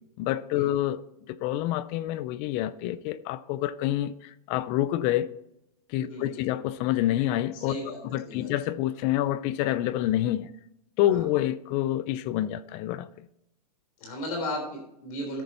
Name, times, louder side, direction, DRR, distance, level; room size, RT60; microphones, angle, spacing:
voice 1, 0.2-1.0 1.3-5.3 5.9-7.8 8.1-10.5 11.0-13.3, left 13 dB, 35° left, 0.4 m, -27 dB
voice 2, 6.0-6.4 7.5-8.0 8.2-8.5 11.0-11.2 14.0-15.4, left 1 dB, 60° left, 3.6 m, -35 dB
13.5 x 6.4 x 4.2 m
hypercardioid pair, 135°, 20 cm